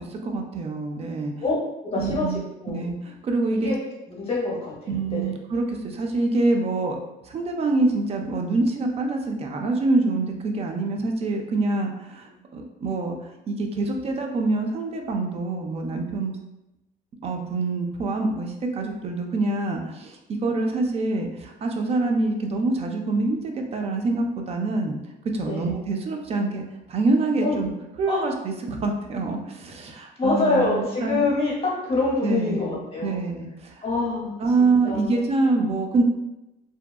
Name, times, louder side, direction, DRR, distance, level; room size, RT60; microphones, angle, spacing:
voice 1, 0.0-1.3 2.0-3.7 4.9-7.0 7.2-13.1 13.5-16.3 17.2-25.0 25.3-26.6 26.9-27.7 28.0-31.2 32.2-33.8 34.4-36.0, right 3 dB, 35° right, 3 dB, 0.4 m, -25 dB
voice 2, 1.9-2.3 2.6-2.8 3.6-3.8 4.1-5.2 25.5-25.7 27.4-27.6 28.1-28.2 30.2-33.2 33.8-34.3 34.8-35.2, left 3 dB, 35° left, -4 dB, 0.8 m, -25 dB
2.7 x 2.2 x 2.2 m, 0.94 s
cardioid pair, 110°, 17 cm